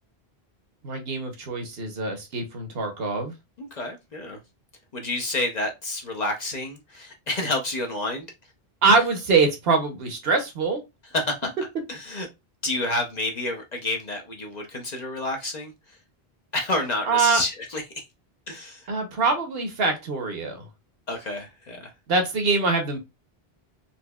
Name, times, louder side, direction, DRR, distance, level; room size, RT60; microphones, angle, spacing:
voice 1, 0.8-3.3 8.8-10.8 17.1-17.4 18.9-20.7 22.1-23.0, right 4 dB, 70° right, 1.0 m, -23 dB
voice 2, 3.6-4.4 4.9-8.3 11.1-11.5 11.9-12.3 12.6-15.7 16.5-17.8 18.5-18.9 21.1-21.9, left 2 dB, 45° left, 0.7 m, -29 dB
4.1 x 2.7 x 2.2 m
omnidirectional pair, 1.1 m